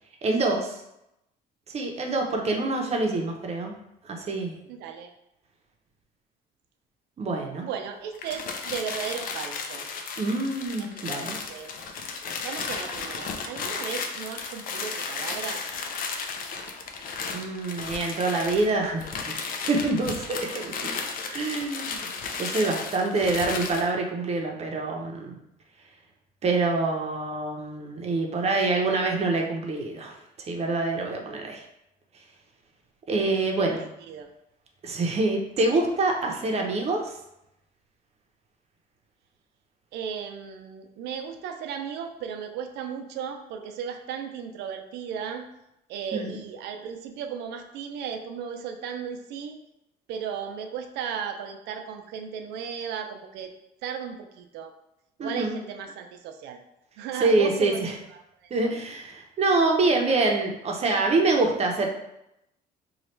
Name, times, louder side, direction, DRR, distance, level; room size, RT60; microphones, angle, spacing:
voice 1, 0.2-0.8 1.7-3.8 4.0-4.5 7.2-7.6 10.2-11.3 17.3-19.3 19.7-20.9 21.3-22.1 22.4-25.4 26.4-30.1 30.5-31.6 33.1-33.8 34.8-37.1 46.1-46.3 55.2-55.6 57.2-57.9 58.5-61.9, right 3 dB, 40° right, 1 dB, 0.7 m, -26 dB
voice 2, 4.7-5.1 7.6-9.9 10.8-11.7 12.4-15.6 33.6-33.8 34.1-34.3 39.9-45.5 45.9-49.6 50.1-53.5 53.8-54.7 55.2-56.6 57.0-57.9 58.4-58.7, right 7 dB, 85° right, 5 dB, 0.5 m, -35 dB
sound 1, 8.1-23.9, left 5 dB, 55° left, 0.5 m, -34 dB
3.1 x 2.4 x 4.3 m, 0.84 s
cardioid pair, 110°, 17 cm